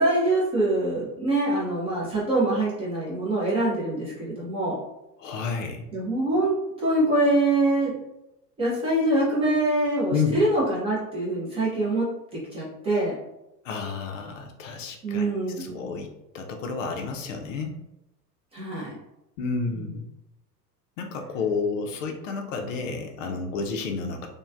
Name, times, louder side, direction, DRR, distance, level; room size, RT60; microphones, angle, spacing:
voice 1, 0.0-4.8 5.9-7.9 8.6-13.2 15.0-15.8 18.5-18.9 19.7-19.8, right 2 dB, 15° right, -7 dB, 0.4 m, -24 dB
voice 2, 5.2-5.8 10.1-10.4 13.6-16.1 16.3-17.8 19.4-20.1 21.0-24.3, left 4 dB, 50° left, 3 dB, 0.5 m, -30 dB
3.0 x 2.2 x 2.3 m, 0.90 s
figure-of-eight pair, 90°, 50 cm